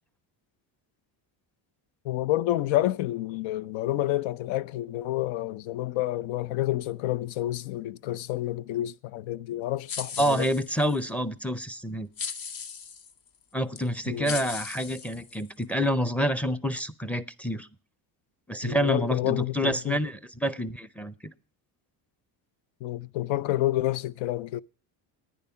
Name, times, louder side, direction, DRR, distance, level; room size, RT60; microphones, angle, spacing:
voice 1, 2.0-10.5 14.1-14.4 18.6-20.0 22.8-24.6, left 15 dB, 80° left, 0.7 m, -29 dB
sound 1, 9.9-11.0 12.2-13.1 13.8-13.9 14.3-15.6, left 6 dB, 50° left, 1.1 m, -37 dB
voice 2, 10.2-12.1 13.5-17.7 18.5-21.1, equal, 5° left, 0.5 m, -28 dB
11.0 x 9.6 x 5.6 m
cardioid pair, 130°, 46 cm